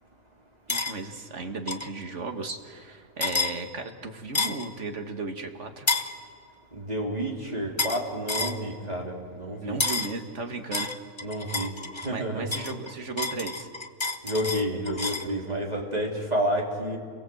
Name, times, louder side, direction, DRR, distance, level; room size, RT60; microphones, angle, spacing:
sound 1, 0.7-0.9 1.7-1.9 3.2-3.5 4.4-4.7 5.9-6.1 7.8-8.0 8.3-8.6 9.8-10.1 10.7-12.1 12.5-15.3, left 3 dB, 20° left, 1.0 m, -29 dB
voice 1, 0.7-5.9 9.6-10.9 12.1-13.7, right 3 dB, 50° right, 5 dB, 2.1 m, -35 dB
voice 2, 6.7-9.8 11.2-11.7 12.0-12.5 14.2-17.0, equal, 25° right, 0 dB, 3.7 m, -30 dB
29.5 x 23.0 x 7.9 m, 2.2 s
omnidirectional pair, 1.6 m